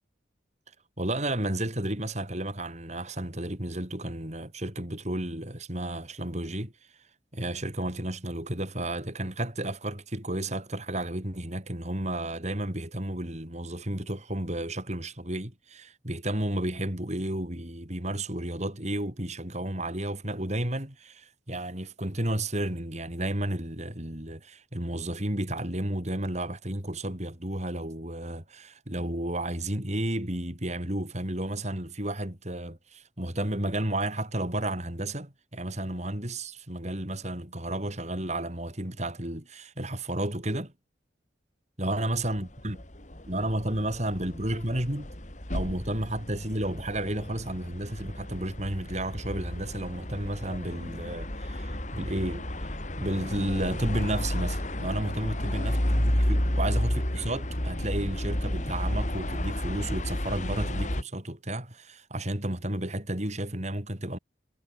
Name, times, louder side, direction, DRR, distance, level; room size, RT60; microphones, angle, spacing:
voice 1, 1.0-6.7 7.3-40.7 41.8-42.8 43.3-45.1 45.5-52.5 53.0-55.7 56.1-64.2, right 1 dB, 40° right, 4.8 m, -32 dB
sound 1, 42.2-61.0, left 1 dB, 40° left, 3.7 m, -31 dB
head